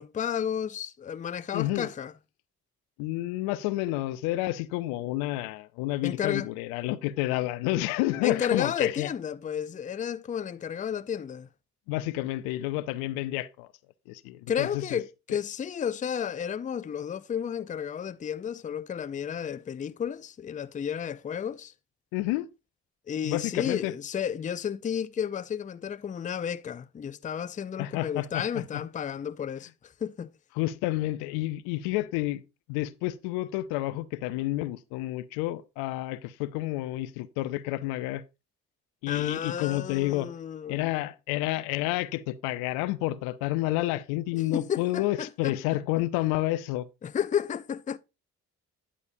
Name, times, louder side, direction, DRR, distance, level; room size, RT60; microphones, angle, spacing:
voice 1, 0.0-2.1 6.0-6.5 8.2-11.5 14.5-21.7 23.1-30.3 39.1-40.9 44.3-45.5 47.0-48.0, left 8 dB, 20° left, 0.4 m, -32 dB
voice 2, 1.5-1.9 3.0-9.1 11.9-13.7 14.1-15.0 22.1-22.5 23.2-23.9 27.8-28.6 30.6-32.4 32.7-38.2 39.0-40.3 40.7-46.9, left 16 dB, 80° left, 0.6 m, -30 dB
9.7 x 7.2 x 2.6 m
hypercardioid pair, 50°, 37 cm